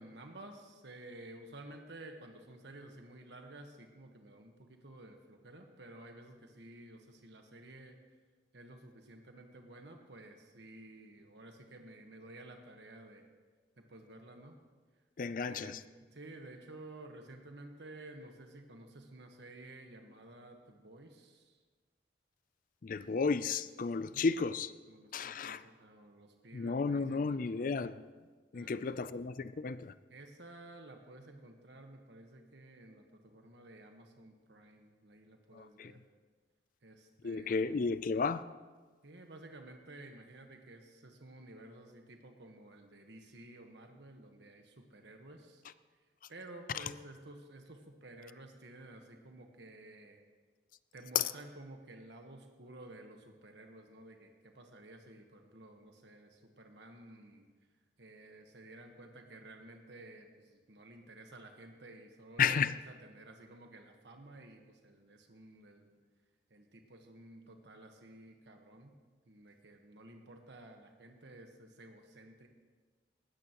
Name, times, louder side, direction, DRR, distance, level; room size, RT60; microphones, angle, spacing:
voice 1, 0.0-8.0 8.5-13.3 13.8-14.6 15.3-15.8 16.1-21.6 24.1-24.2 24.9-27.8 28.5-29.1 30.1-36.0 36.8-37.8 39.0-45.6 46.3-50.2 50.9-57.4 58.0-62.6 62.9-66.0 66.5-69.0 69.3-72.5, right 1 dB, 70° right, 1.4 m, -53 dB
voice 2, 15.2-15.8 22.8-24.7 25.1-25.6 26.5-28.1 28.5-29.9 35.5-35.9 37.2-38.4 46.7-46.8 51.1-51.3 62.4-62.8, left 5 dB, 50° left, 0.4 m, -33 dB
19.0 x 13.0 x 3.0 m
head